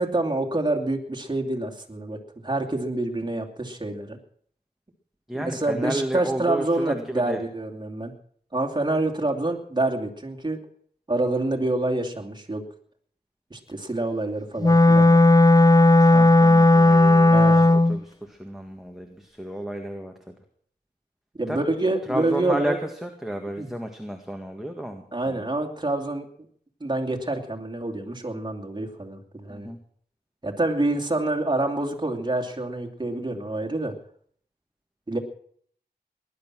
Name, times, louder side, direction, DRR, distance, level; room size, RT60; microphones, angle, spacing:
voice 1, 0.0-2.2 2.4-4.2 5.3-8.1 8.5-10.6 11.1-12.6 13.5-15.2 17.3-17.7 21.4-22.8 23.6-23.7 25.1-26.2 26.8-29.7 30.4-33.9 35.1-35.2, right 2 dB, 25° right, 1 dB, 2.7 m, -27 dB
voice 2, 5.3-7.4 16.0-20.3 21.5-21.7 22.1-25.4 29.5-29.8, right 1 dB, ahead, 3 dB, 1.9 m, -32 dB
Wind instrument woodwind instrument, 14.6-18.0, left 2 dB, 20° left, 0.6 m, -15 dB
19.5 x 11.5 x 6.2 m, 0.62 s
wide cardioid pair, 75°, 17 cm